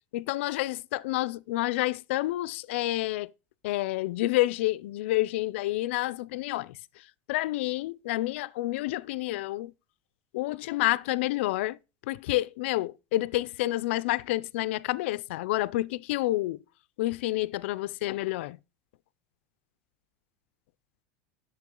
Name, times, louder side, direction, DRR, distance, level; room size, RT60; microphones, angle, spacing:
voice 1, 0.1-3.3 3.6-6.7 7.3-9.7 10.3-11.8 12.1-16.6 17.0-18.6, left 17 dB, 80° left, 0.5 m, -29 dB
10.5 x 6.9 x 3.7 m
supercardioid pair, 165°, 6 cm